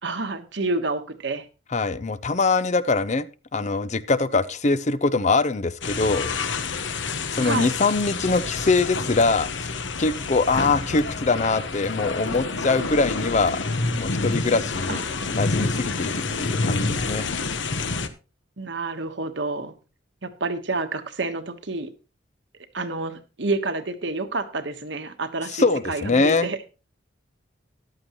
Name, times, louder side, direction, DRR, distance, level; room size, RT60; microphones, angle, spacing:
voice 1, 0.0-1.5 7.4-7.7 14.9-15.0 18.6-19.7 20.2-21.9 22.7-26.6, right 3 dB, 65° right, 8 dB, 1.3 m, -29 dB
voice 2, 1.7-3.3 3.5-6.3 7.3-9.7 10.0-13.6 13.9-15.0 15.3-17.3 25.5-26.5, left 3 dB, 35° left, 15 dB, 0.6 m, -23 dB
sound 1, 5.8-18.1, left 3 dB, 70° left, 1.1 m, -28 dB
14.0 x 11.5 x 3.0 m, 0.32 s
head